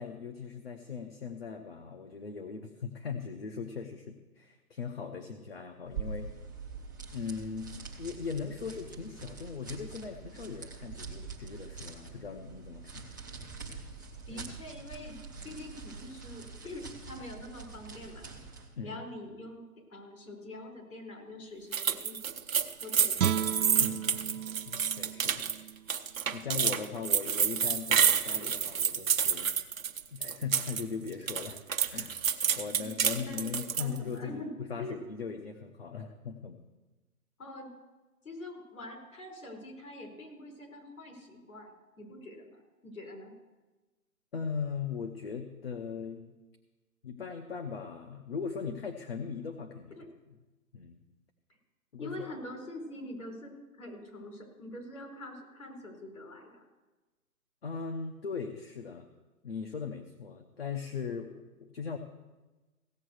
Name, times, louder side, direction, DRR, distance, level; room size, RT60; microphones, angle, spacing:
voice 1, 0.0-6.3 7.1-13.1 14.3-14.4 15.4-15.6 18.8-19.0 23.8-24.4 24.7-25.5 26.3-29.5 30.1-31.6 31.9-32.3 32.6-36.6 44.3-46.3 47.0-49.9 50.7-51.0 51.9-52.3 57.6-59.1 59.4-62.0, left 5 dB, 45° left, 4 dB, 0.9 m, -39 dB
sound 1, 5.9-18.7, right 4 dB, 15° right, 0.7 m, -44 dB
voice 2, 14.3-15.2 15.4-18.3 18.8-22.2 22.8-23.5 33.2-35.0 37.4-37.7 38.2-43.3 49.9-50.0 52.0-56.6, left 1 dB, 75° left, 2 dB, 4.8 m, -45 dB
sound 2, 21.7-30.8 31.1-34.0, right 7 dB, 65° right, 1.1 m, -29 dB
Guitar, 23.2-26.3 26.7-26.9, right 10 dB, 85° right, 0.7 m, -35 dB
16.0 x 7.4 x 6.4 m, 1.2 s
hypercardioid pair, 175°, 44 cm